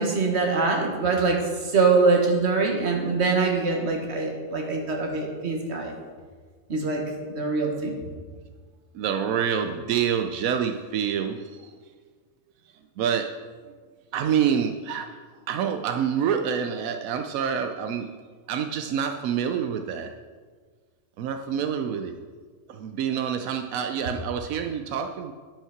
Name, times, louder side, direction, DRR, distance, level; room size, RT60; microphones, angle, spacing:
voice 1, 0.0-5.9 6.7-7.0 7.4-8.0, right 4 dB, 55° right, 1 dB, 1.7 m, -23 dB
voice 2, 8.9-11.8 13.0-13.4 14.1-15.2 15.5-18.1 18.5-20.1 21.2-22.2 22.7-25.3, right 8 dB, 85° right, 6 dB, 1.0 m, -27 dB
10.5 x 5.6 x 5.9 m, 1.5 s
omnidirectional pair, 1.4 m